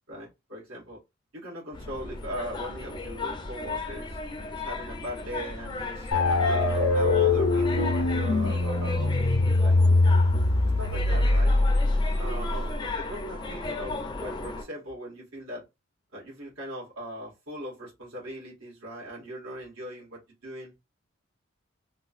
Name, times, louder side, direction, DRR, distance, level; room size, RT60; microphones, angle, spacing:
voice 1, 0.1-1.0 1.3-4.2 4.5-6.1 6.4-9.8 10.8-11.6 12.2-15.6 16.1-20.7, equal, 80° right, 1.9 m, -39 dB
sound 1, 1.7-14.6, left 3 dB, 20° left, 0.5 m, -36 dB
sound 2, 6.1-12.8, left 2 dB, 85° left, 0.7 m, -23 dB
3.6 x 2.3 x 2.4 m
head